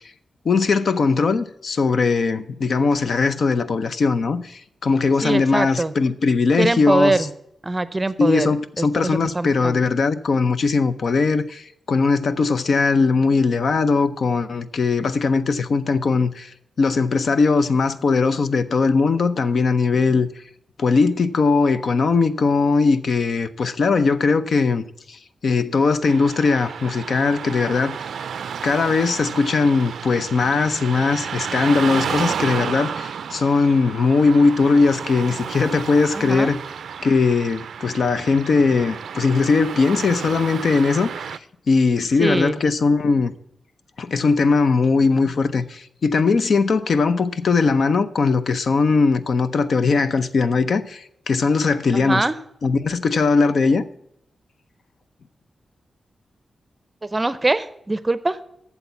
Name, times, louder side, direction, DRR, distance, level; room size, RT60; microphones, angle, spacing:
voice 1, 0.4-7.3 8.2-20.3 20.8-28.0 28.6-36.6 37.0-41.4 41.7-43.3 44.0-52.2 52.6-53.8, left 4 dB, 65° left, 0.6 m, -19 dB
voice 2, 5.2-5.9 6.6-7.3 7.6-9.8 36.1-36.5 42.2-42.6 51.9-52.4 57.1-58.4, right 2 dB, 20° right, 0.6 m, -23 dB
Car passing by / Traffic noise roadway noise, 26.1-41.4, right 7 dB, 85° right, 0.4 m, -31 dB
8.3 x 7.1 x 7.1 m
cardioid pair, 90°, 0 cm